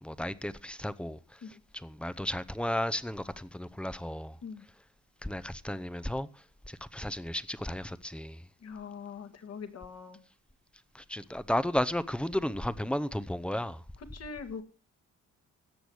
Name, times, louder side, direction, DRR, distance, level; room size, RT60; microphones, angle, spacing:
voice 1, 0.0-1.4 1.7-4.4 5.2-6.3 6.7-8.4 10.9-13.8, left 1 dB, 5° left, 0.8 m, -33 dB
voice 2, 8.6-10.2 14.0-14.6, left 5 dB, 55° left, 2.1 m, -42 dB
17.0 x 6.9 x 6.3 m
cardioid pair, 90°, 30 cm